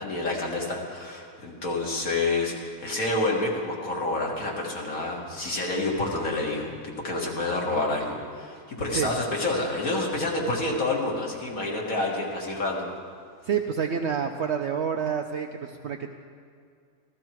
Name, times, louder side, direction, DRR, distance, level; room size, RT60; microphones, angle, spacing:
voice 1, 0.0-12.9, left 2 dB, 65° left, -2 dB, 2.3 m, -28 dB
voice 2, 13.4-16.1, right 7 dB, 65° right, 4 dB, 0.7 m, -28 dB
14.5 x 14.0 x 4.6 m, 2.2 s
omnidirectional pair, 1.6 m